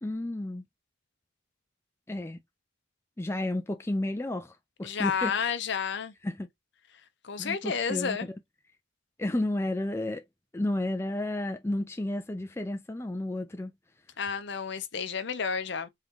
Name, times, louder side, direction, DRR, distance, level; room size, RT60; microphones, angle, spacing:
voice 1, 0.0-0.6 2.1-2.4 3.2-4.5 4.8-5.5 6.2-6.5 7.4-8.4 9.2-10.2 10.5-13.7, left 1 dB, 15° left, 0.4 m, -32 dB
voice 2, 4.8-6.1 7.2-8.3 14.2-15.9, left 6 dB, 65° left, 0.7 m, -31 dB
3.7 x 2.9 x 3.6 m
head